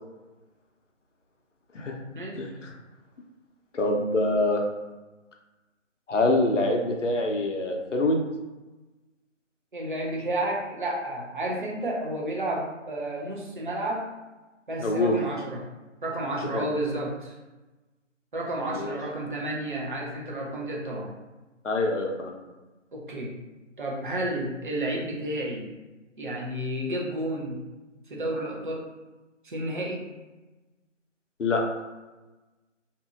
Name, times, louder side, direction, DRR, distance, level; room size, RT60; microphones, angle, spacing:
voice 1, 3.7-4.6 6.1-8.2 14.8-15.2 16.5-16.7 18.7-18.9 21.6-22.3 31.4-31.6, left 2 dB, 70° left, 1 dB, 0.7 m, -25 dB
voice 2, 9.7-14.1 14.7-15.7 16.0-17.4 18.3-21.1 22.9-23.3 23.8-25.6 26.2-27.6 28.1-28.9 29.4-30.1, right 1 dB, 40° right, -3 dB, 0.6 m, -31 dB
2.7 x 2.5 x 2.4 m, 1.1 s
figure-of-eight pair, 150°, 38 cm